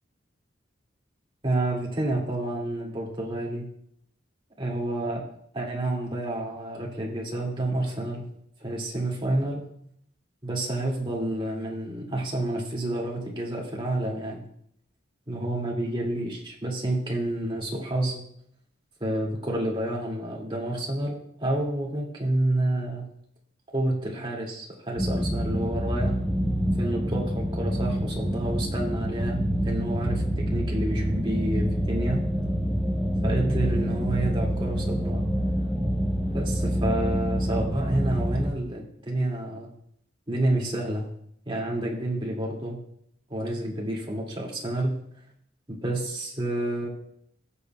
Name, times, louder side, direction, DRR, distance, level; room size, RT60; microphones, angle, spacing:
voice 1, 1.4-3.7 4.6-5.2 5.5-8.2 8.6-9.6 10.4-14.4 15.3-18.2 19.0-23.1 23.7-26.2 26.8-32.2 33.2-35.2 36.3-39.7 40.3-41.0 41.5-42.8 43.3-44.9 45.7-46.9, right 1 dB, 25° right, -2 dB, 2.2 m, -29 dB
sound 1, 25.0-38.5, equal, 5° left, 0.9 m, -26 dB
16.5 x 6.9 x 2.3 m, 0.69 s
head